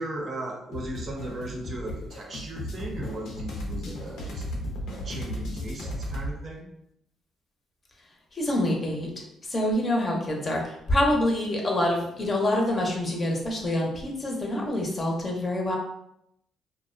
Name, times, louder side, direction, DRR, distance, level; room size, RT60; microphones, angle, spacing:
voice 1, 0.0-4.4 5.0-6.7, right 2 dB, 50° right, 0 dB, 0.6 m, -36 dB
sound 1, 0.7-6.3, left 1 dB, 80° left, 0.5 m, -35 dB
voice 2, 8.3-9.1 9.4-15.8, left 1 dB, 35° left, -1 dB, 0.6 m, -26 dB
2.4 x 2.0 x 2.5 m, 0.77 s
cardioid pair, 90°, 0 cm